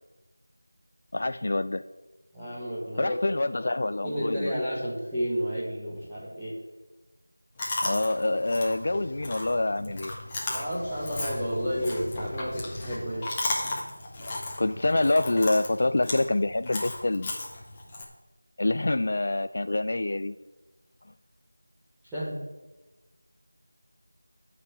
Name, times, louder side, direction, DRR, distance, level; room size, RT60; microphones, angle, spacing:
voice 1, 1.1-1.8 3.0-4.5 7.8-10.2 14.6-17.3 18.6-20.4, left 2 dB, 45° left, 11 dB, 0.4 m, -26 dB
voice 2, 2.3-3.2 4.0-6.6 10.5-13.3 22.1-22.4, equal, 5° right, -14 dB, 1.4 m, -31 dB
Chewing mastication, 7.6-18.0, left 2 dB, 15° left, 1.4 m, -35 dB
10.5 x 5.9 x 8.6 m, 1.1 s
figure-of-eight pair, 175°, 0 cm